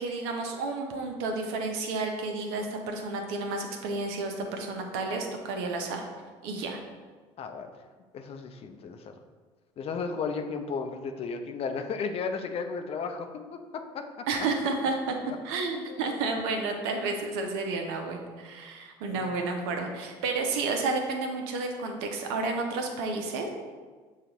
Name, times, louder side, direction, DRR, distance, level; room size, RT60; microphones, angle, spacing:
voice 1, 0.0-6.1 6.4-6.8 14.3-15.1 15.4-23.5, right 3 dB, 75° right, 3 dB, 0.7 m, -31 dB
voice 2, 7.4-7.9 8.1-9.2 9.8-14.1 15.9-16.1 17.0-17.2 19.1-19.3, left 5 dB, 45° left, 6 dB, 0.5 m, -34 dB
6.5 x 2.4 x 2.9 m, 1.5 s
hypercardioid pair, 70°, 14 cm